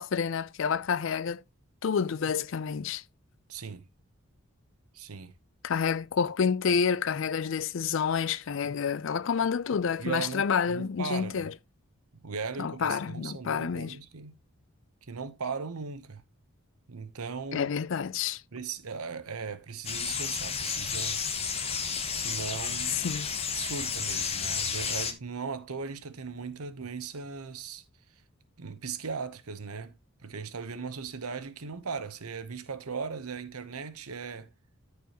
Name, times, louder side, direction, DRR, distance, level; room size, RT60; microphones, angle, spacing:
voice 1, 0.0-1.4 1.8-3.0 5.6-11.5 12.6-14.0 17.5-18.4 22.9-23.3, left 6 dB, 55° left, 0.4 m, -29 dB
voice 2, 3.5-3.8 4.9-5.3 10.0-11.5 12.2-14.3 15.1-16.2 16.9-17.7 18.5-21.2 22.1-23.1 23.5-27.8 28.6-30.0 30.2-34.5, right 5 dB, 80° right, 0.9 m, -38 dB
sound 1, 19.9-25.1, left 6 dB, 25° left, 1.0 m, -32 dB
14.0 x 4.7 x 2.9 m
head